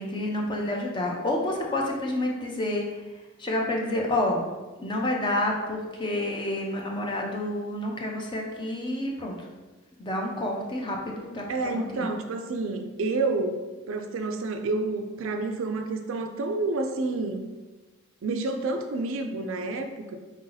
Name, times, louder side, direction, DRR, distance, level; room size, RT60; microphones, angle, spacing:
voice 1, 0.0-3.0 3.4-4.4 4.8-9.3 10.0-12.1, left 1 dB, 20° left, 0 dB, 0.5 m, -29 dB
voice 2, 11.5-13.6 13.9-17.4 18.2-20.2, right 3 dB, 65° right, 6 dB, 0.4 m, -29 dB
4.2 x 2.7 x 3.9 m, 1.2 s
head